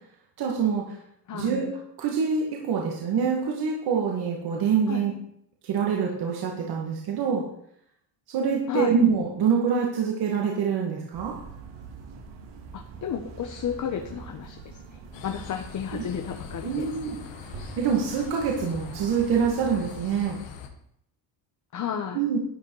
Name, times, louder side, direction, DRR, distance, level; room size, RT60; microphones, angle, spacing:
voice 1, 0.4-1.0 1.3-1.7 2.0-5.1 5.6-7.4 8.3-11.3 15.9-16.0 16.6-17.2 17.8-20.4 22.1-22.4, right 6 dB, 60° right, -1 dB, 2.1 m, -25 dB
sound 1, 11.1-20.0, right 5 dB, 75° right, 2.4 m, -44 dB
voice 2, 12.7-16.8 21.7-22.2, left 8 dB, 45° left, 5 dB, 1.1 m, -32 dB
sound 2, 15.1-20.7, left 7 dB, 85° left, 1.8 m, -42 dB
11.5 x 8.7 x 4.8 m, 0.71 s
cardioid pair, 130°, 43 cm